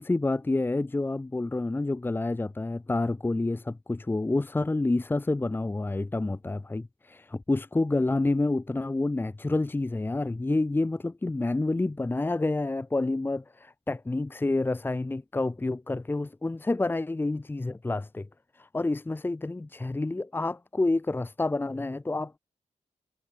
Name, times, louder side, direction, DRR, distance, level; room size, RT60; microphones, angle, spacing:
voice 1, 0.0-18.3 18.6-22.4, left 2 dB, 15° left, 1.0 m, -28 dB
wide cardioid pair, 130°, 12 cm